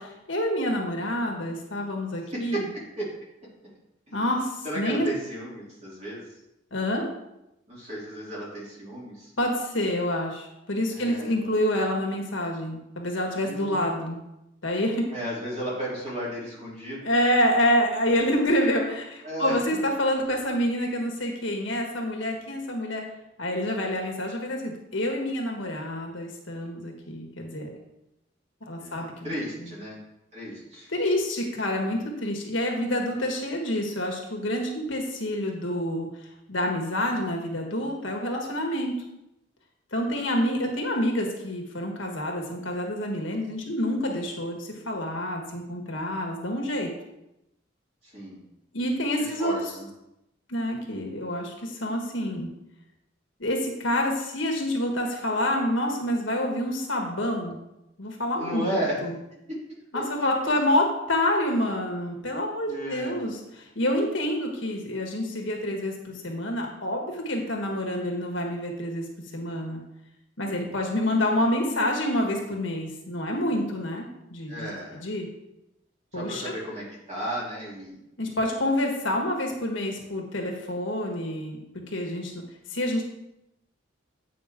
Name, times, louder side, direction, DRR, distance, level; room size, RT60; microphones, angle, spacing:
voice 1, 0.0-2.6 4.1-5.1 6.7-7.0 9.4-14.2 14.6-15.1 17.0-23.0 23.4-27.7 28.7-29.3 29.6-29.7 30.9-36.1 36.5-39.0 39.9-46.9 48.7-49.5 50.5-52.5 53.4-57.6 58.0-58.7 59.0-59.1 59.9-69.0 69.3-69.8 70.4-75.3 76.1-76.5 78.2-81.6 81.9-82.3 82.7-83.0, left 1 dB, 70° left, 1 dB, 1.6 m, -27 dB
voice 2, 2.3-3.1 4.1-4.2 4.6-6.2 7.7-9.3 10.9-11.4 13.4-13.9 15.1-17.0 19.2-19.5 28.8-30.0 30.3-30.9 48.0-48.4 49.2-49.9 58.4-59.0 59.3-59.6 59.9-60.0 60.4-60.5 62.6-63.2 74.5-75.0 76.1-78.0, right 1 dB, 35° right, -6 dB, 3.0 m, -34 dB
8.8 x 5.8 x 3.6 m, 0.87 s
head